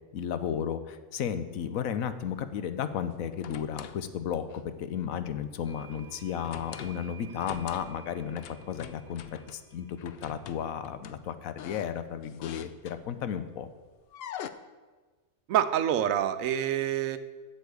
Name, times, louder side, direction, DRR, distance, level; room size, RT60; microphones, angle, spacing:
voice 1, 0.1-13.7, left 8 dB, 85° left, 11 dB, 1.1 m, -34 dB
sound 1, 2.0-2.4 3.1-4.0 4.5-4.7 6.4-7.0 7.4-8.0 8.3-9.6 10.0-13.3 14.1-14.5, left 9 dB, 60° left, 0.6 m, -45 dB
sound 2, 5.6-10.9, right 5 dB, 40° right, 1.0 m, -54 dB
voice 2, 15.5-17.2, right 10 dB, 75° right, 12 dB, 1.0 m, -26 dB
8.2 x 7.0 x 8.1 m, 1.3 s
omnidirectional pair, 1.4 m